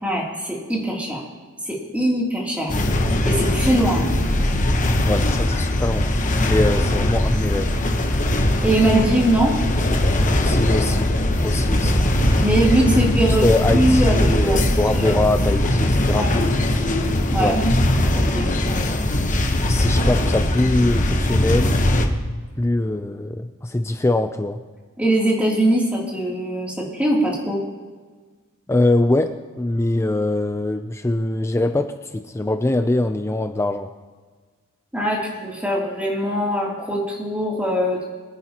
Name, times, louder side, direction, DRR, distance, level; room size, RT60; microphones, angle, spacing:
voice 1, 0.0-1.2 1.7-2.7 3.2-4.1 8.6-9.5 12.4-14.6 15.0-15.2 16.2-16.4 17.3-17.9 18.2-18.7 25.0-27.6 34.9-38.0, right 1 dB, 5° right, -4 dB, 2.8 m, -21 dB
sound 1, 2.7-22.1, left 1 dB, 35° left, 1.0 m, -20 dB
voice 2, 5.0-6.1 6.4-7.7 10.4-11.1 11.4-12.0 13.3-16.6 17.4-17.6 19.7-21.8 22.6-24.6 28.7-33.9, left 2 dB, 10° left, 8 dB, 0.4 m, -22 dB
23.5 x 9.9 x 2.9 m, 1.5 s
head